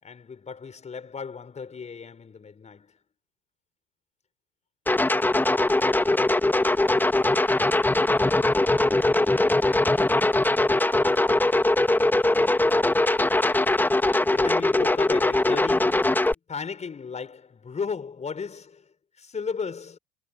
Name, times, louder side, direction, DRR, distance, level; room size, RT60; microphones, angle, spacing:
voice 1, 0.0-3.0 14.3-20.0, left 5 dB, 20° left, 5.2 m, -35 dB
sound 1, 4.9-16.3, left 2 dB, 5° left, 1.6 m, -21 dB
figure-of-eight pair, 75°, 31 cm